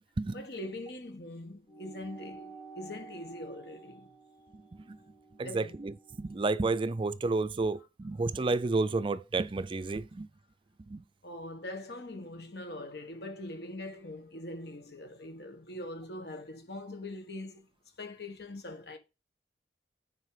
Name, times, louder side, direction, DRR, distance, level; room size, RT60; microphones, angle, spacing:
voice 1, 0.3-4.1 5.4-5.8 11.2-17.7 18.0-19.0, left 1 dB, 65° left, 1.6 m, -42 dB
sound 1, 1.7-6.5, right 3 dB, 10° left, 1.3 m, -51 dB
voice 2, 5.4-5.9 6.2-10.3 10.9-11.0, right 3 dB, 30° right, 0.4 m, -30 dB
9.6 x 4.6 x 4.9 m
head